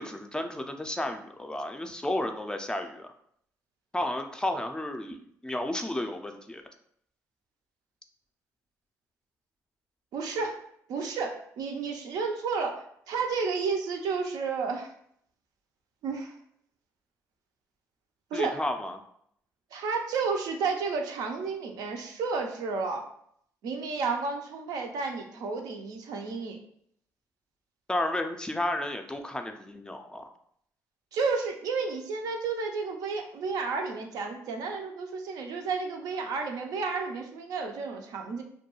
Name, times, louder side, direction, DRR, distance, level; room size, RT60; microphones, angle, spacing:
voice 1, 0.0-3.1 3.9-6.6 18.3-19.0 27.9-30.2, left 1 dB, 10° left, 5 dB, 0.3 m, -32 dB
voice 2, 10.1-10.6 10.9-14.9 16.0-16.4 18.3-18.6 19.7-23.0 23.6-26.6 31.1-38.4, right 4 dB, 75° right, 3 dB, 0.4 m, -31 dB
2.2 x 2.2 x 2.9 m, 0.68 s
supercardioid pair, 65°, 7 cm